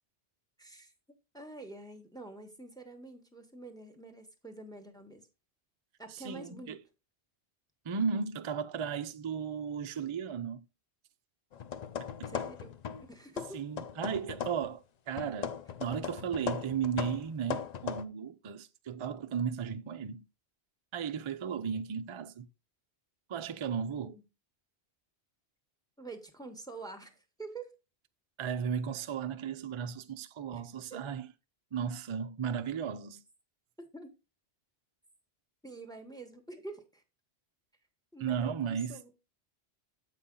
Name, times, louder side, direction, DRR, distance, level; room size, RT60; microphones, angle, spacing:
voice 1, 0.6-0.9 1.3-5.3 6.0-6.8 12.3-12.8 13.1-13.6 24.0-24.2 26.0-27.7 30.5-30.6 30.9-31.0 33.8-34.1 35.6-37.0 38.1-39.1, right 2 dB, 5° left, 0.9 m, -47 dB
voice 2, 6.1-6.8 7.8-10.7 13.5-20.2 20.9-22.5 23.3-24.1 28.4-31.3 31.7-33.2 38.2-39.0, right 7 dB, 50° right, 0.3 m, -35 dB
sound 1, 11.5-13.1 13.4-14.7 15.2-18.0, left 7 dB, 50° left, 0.5 m, -38 dB
7.4 x 5.5 x 3.7 m
omnidirectional pair, 1.2 m